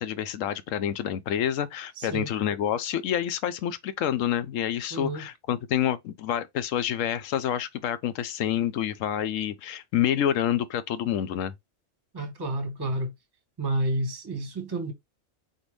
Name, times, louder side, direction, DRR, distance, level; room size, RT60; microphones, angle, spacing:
voice 1, 0.0-11.5, left 10 dB, 85° left, 1.0 m, -28 dB
voice 2, 2.0-2.3 4.9-5.3 12.1-13.1 13.6-14.9, right 1 dB, 20° right, 0.9 m, -30 dB
4.1 x 3.5 x 3.1 m
omnidirectional pair, 1.3 m